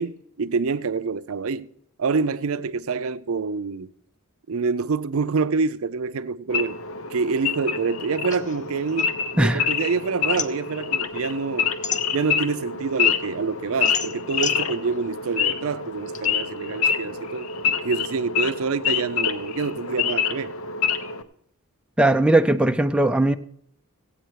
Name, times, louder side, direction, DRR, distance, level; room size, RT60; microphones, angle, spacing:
voice 1, 0.0-1.7 2.0-3.9 4.5-6.8 7.1-11.7 12.1-20.5, right 4 dB, 65° right, 0.5 m, -26 dB
Wild animals / Idling, 6.5-21.2, left 6 dB, 65° left, 0.8 m, -27 dB
sound 1, 8.3-9.8 10.1-12.6 13.1-16.3, left 6 dB, 35° left, 0.7 m, -34 dB
voice 2, 22.0-23.4, right 1 dB, 5° right, 0.4 m, -19 dB
16.0 x 8.7 x 4.6 m
head